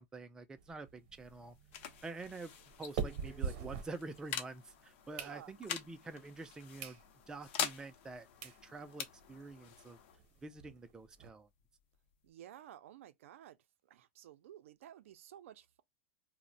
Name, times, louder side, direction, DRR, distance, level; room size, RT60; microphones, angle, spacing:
voice 1, 0.0-1.6 2.0-2.5 2.8-7.0 7.3-10.0 10.4-11.5, right 3 dB, 10° right, 0.3 m, -47 dB
sound 1, 0.6-4.5 4.9-5.9 6.4-6.5 6.8-7.0 7.5-7.6 8.1-8.2 8.4-8.6 9.0-9.1 9.3-9.4 9.7-9.8 10.1-11.3, right 6 dB, 55° right, 0.7 m, -43 dB
sound 2, 0.9-12.3, left 8 dB, 65° left, 0.6 m, -46 dB
voice 2, 5.1-5.5 12.2-13.6 13.9-15.8, right 11 dB, 85° right, 0.4 m, -54 dB
2.5 x 2.1 x 3.7 m
supercardioid pair, 140°, 7 cm